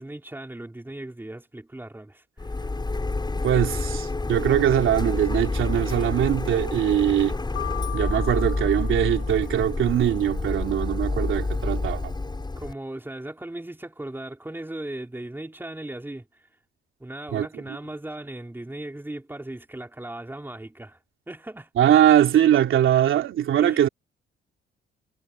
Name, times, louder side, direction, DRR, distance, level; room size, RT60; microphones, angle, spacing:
voice 1, 0.0-2.7 12.6-16.5 17.0-21.0 21.3-21.7 23.6-23.9, right 1 dB, 10° right, 3.9 m, -37 dB
Printer, 2.4-12.7, left 3 dB, 20° left, 7.4 m, -28 dB
voice 2, 3.4-7.4 7.9-12.1 17.3-17.8 21.8-23.9, right 10 dB, 70° right, 3.0 m, -21 dB
Piano, 7.6-9.7, left 16 dB, 85° left, 2.3 m, -38 dB
cardioid pair, 90°, 21 cm